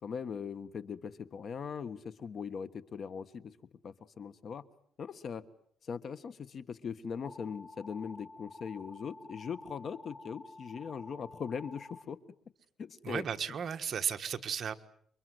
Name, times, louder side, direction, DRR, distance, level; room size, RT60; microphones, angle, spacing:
voice 1, 0.0-3.6 3.8-4.6 5.0-5.4 5.8-12.2 12.8-13.2, left 6 dB, 50° left, 14 dB, 1.4 m, -40 dB
sound 1, 7.2-12.0, left 2 dB, 30° left, 5.6 m, -50 dB
voice 2, 13.0-14.7, right 7 dB, 50° right, 8 dB, 1.5 m, -34 dB
29.0 x 23.5 x 8.0 m, 0.65 s
cardioid pair, 135°, 0 cm